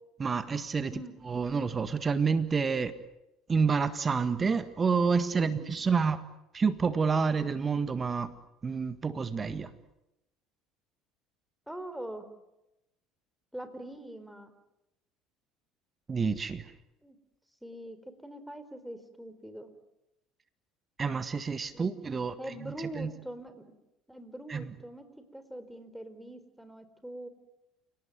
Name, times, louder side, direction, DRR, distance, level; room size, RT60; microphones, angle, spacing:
voice 1, 0.2-0.9 1.2-2.9 3.5-6.2 6.5-8.3 8.6-9.7 16.1-16.7 21.0-22.4 22.6-23.1 24.5-24.7, right 5 dB, 30° right, 12 dB, 1.7 m, -28 dB
voice 2, 11.7-12.3 13.5-14.5 17.0-17.2 17.6-19.7 21.7-21.9 22.4-23.7 24.1-27.3, right 1 dB, 5° right, 9 dB, 4.3 m, -43 dB
29.5 x 18.0 x 9.3 m, 0.91 s
hypercardioid pair, 65°, 0 cm